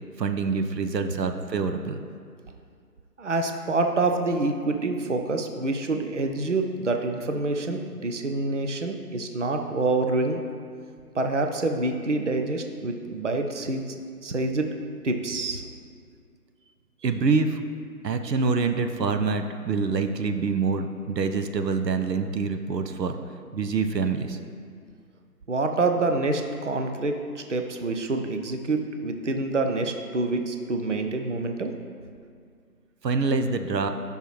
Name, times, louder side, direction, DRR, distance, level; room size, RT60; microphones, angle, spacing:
voice 1, 0.2-2.0 17.0-17.6 18.0-23.2 23.5-24.4 33.0-33.9, right 4 dB, 80° right, 7 dB, 0.8 m, -26 dB
voice 2, 3.2-10.4 11.1-13.9 14.2-14.8 15.0-15.6 25.5-31.7, right 2 dB, 50° right, 4 dB, 0.5 m, -27 dB
11.0 x 5.5 x 3.1 m, 2.2 s
figure-of-eight pair, 170°, 49 cm